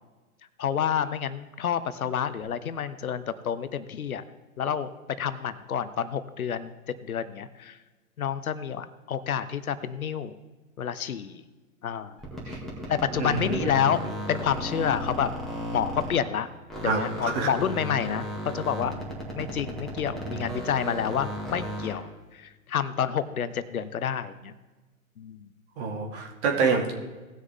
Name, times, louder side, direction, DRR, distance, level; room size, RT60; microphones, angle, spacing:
voice 1, 0.6-4.2 4.6-4.9 5.2-6.7 7.1-7.8 8.2-10.3 10.8-11.4 11.8-12.2 12.9-14.0 14.3-15.3 15.7-16.5 16.8-18.9 19.3-24.5 25.2-25.5, left 8 dB, 80° left, 13 dB, 0.9 m, -29 dB
sound 1, 12.2-16.4 16.7-22.1, equal, ahead, 2.1 m, -35 dB
voice 2, 13.2-13.7 16.8-17.5 25.8-26.9, right 4 dB, 50° right, 2 dB, 2.5 m, -27 dB
17.5 x 6.5 x 3.6 m, 1.2 s
hypercardioid pair, 115°, 42 cm